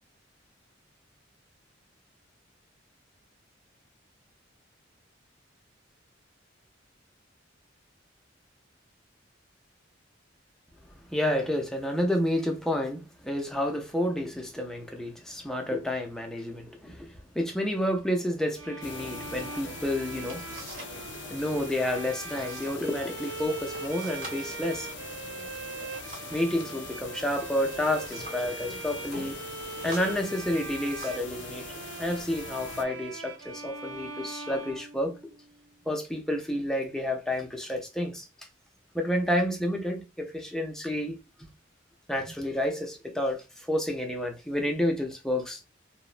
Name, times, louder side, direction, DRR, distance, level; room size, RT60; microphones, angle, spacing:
voice 1, 11.1-20.5 21.3-24.9 26.3-29.4 29.8-31.7 32.0-35.2 35.9-38.3 38.9-41.2 42.1-45.6, left 1 dB, 5° left, 0.4 m, -30 dB
Bowed string instrument, 18.6-35.5, right 4 dB, 80° right, 0.3 m, -41 dB
sound 1, 18.8-32.8, left 5 dB, 65° left, 0.4 m, -42 dB
sound 2, 20.3-21.0 21.3-21.8 22.3-22.8 23.1-23.2 23.8-26.5 27.5-28.5 28.9-29.2 29.7-31.4 32.2-32.3 32.9-33.4, right 1 dB, 45° right, 1.0 m, -47 dB
3.0 x 2.0 x 2.4 m
head